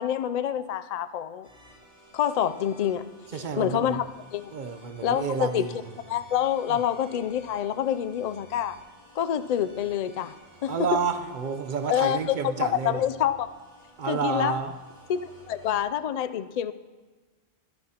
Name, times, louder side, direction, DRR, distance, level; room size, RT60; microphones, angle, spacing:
voice 1, 0.0-1.5 2.1-3.1 3.3-4.5 5.0-5.6 6.1-8.8 9.1-10.3 10.6-11.0 11.9-13.5 14.1-14.6 15.1-16.7, left 10 dB, 80° left, 13 dB, 0.3 m, -27 dB
sound 1, 1.4-15.8, right 1 dB, 60° right, 3.2 m, -53 dB
voice 2, 3.3-4.0 4.5-5.8 6.7-6.8 10.7-13.0 14.0-14.8, right 5 dB, 45° right, 8 dB, 0.8 m, -30 dB
23.5 x 10.5 x 2.9 m, 1.4 s
omnidirectional pair, 1.2 m